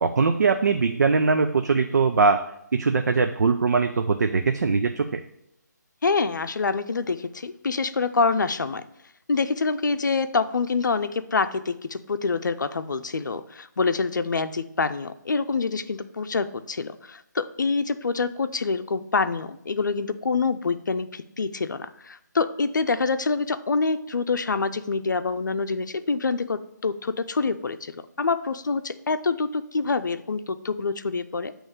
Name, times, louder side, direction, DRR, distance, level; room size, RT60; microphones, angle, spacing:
voice 1, 0.0-2.4 2.7-5.2, right 4 dB, 65° right, 7 dB, 0.5 m, -21 dB
voice 2, 6.0-8.8 9.3-31.5, left 4 dB, 75° left, 10 dB, 0.5 m, -26 dB
8.4 x 3.1 x 6.5 m, 0.80 s
figure-of-eight pair, 150°, 10 cm